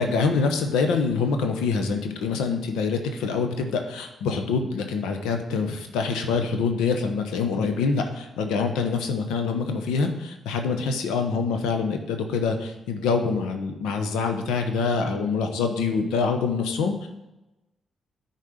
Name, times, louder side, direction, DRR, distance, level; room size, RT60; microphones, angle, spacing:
voice 1, 0.0-17.1, left 4 dB, 90° left, 5 dB, 0.9 m, -25 dB
9.9 x 4.2 x 4.9 m, 1.0 s
supercardioid pair, 55°, 0 cm